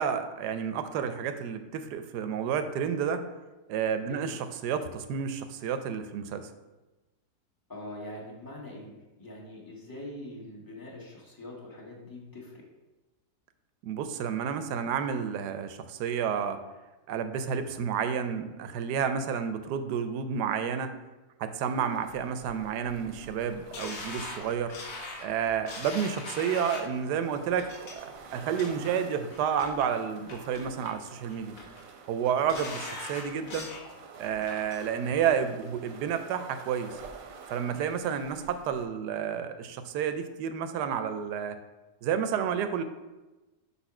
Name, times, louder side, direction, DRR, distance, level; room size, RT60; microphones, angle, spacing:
voice 1, 0.0-3.2 3.7-6.5 13.8-16.6 17.1-20.9 21.4-24.7 25.2-27.7 28.0-31.6 32.1-33.7 34.2-37.0 37.5-41.6 42.0-42.8, right 7 dB, 85° right, 9 dB, 1.2 m, -30 dB
voice 2, 7.7-12.6, left 1 dB, 15° left, -4 dB, 1.3 m, -43 dB
sound 1, 21.6-38.9, right 5 dB, 60° right, 1.0 m, -50 dB
sound 2, 23.7-27.0 27.6-27.9 28.4-28.9 29.3-29.9 30.3-31.0 31.3-31.8 32.2-33.9 34.2-34.8 35.2-35.3, left 3 dB, 65° left, 1.5 m, -41 dB
5.5 x 4.2 x 5.8 m, 1.1 s
omnidirectional pair, 1.7 m